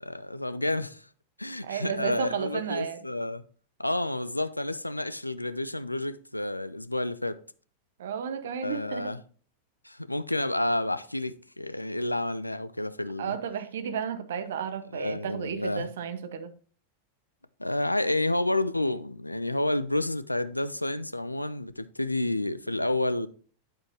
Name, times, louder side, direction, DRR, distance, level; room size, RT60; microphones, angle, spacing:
voice 1, 0.0-1.1 1.4-3.4 3.8-7.4 8.6-9.2 9.8-13.4 14.9-15.9 17.6-23.3, left 1 dB, 85° left, 0.4 m, -30 dB
voice 2, 1.6-3.0 8.0-9.2 13.2-16.5, right 7 dB, 60° right, 0.9 m, -33 dB
9.0 x 7.7 x 2.8 m
figure-of-eight pair, 90°, 0 cm